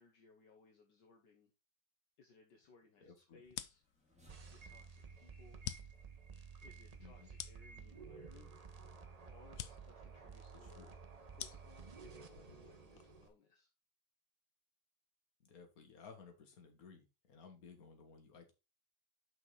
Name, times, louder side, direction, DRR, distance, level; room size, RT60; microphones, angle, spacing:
voice 1, 0.0-1.5 2.2-3.8 4.1-5.7 6.0-6.1 6.6-8.5 9.3-11.0 11.4-13.7, left 4 dB, 65° left, 1.6 m, -65 dB
voice 2, 3.0-3.4 7.0-7.3 10.6-10.9 15.4-18.5, left 5 dB, 50° left, 1.9 m, -58 dB
sound 1, 3.4-13.3, left 11 dB, 90° left, 0.7 m, -51 dB
sound 2, 3.6-8.9, left 1 dB, 5° right, 2.1 m, -72 dB
sound 3, 4.3-13.3, right 5 dB, 80° right, 0.3 m, -54 dB
6.0 x 5.5 x 3.9 m
omnidirectional pair, 2.1 m